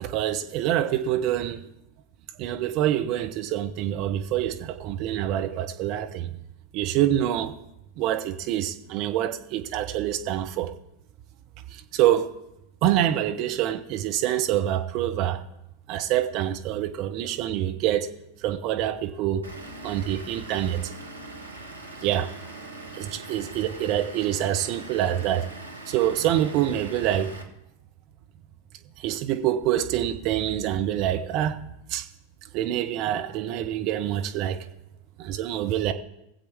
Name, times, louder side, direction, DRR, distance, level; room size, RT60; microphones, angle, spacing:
voice 1, 0.0-1.6 2.4-6.3 6.7-7.5 8.0-10.7 11.9-12.3 12.8-15.4 15.9-18.1 18.4-19.4 19.8-20.8 22.0-22.3 22.9-25.5 25.9-27.3 29.0-31.6 31.9-32.1 32.5-34.6 35.2-35.9, right 12 dB, 40° right, 0.9 m, -26 dB
Vehicle / Engine, 19.4-27.4, right 2 dB, 85° right, 1.3 m, -42 dB
20.5 x 7.7 x 3.5 m
figure-of-eight pair, 90°, 0 cm